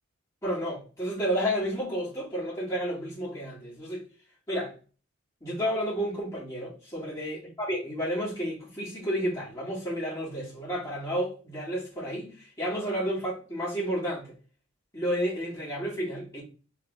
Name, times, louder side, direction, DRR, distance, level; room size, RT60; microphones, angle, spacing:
voice 1, 0.4-4.1 4.5-4.7 5.4-14.3 14.9-16.4, equal, 15° left, 1.9 m, -31 dB
3.3 x 3.3 x 3.4 m
head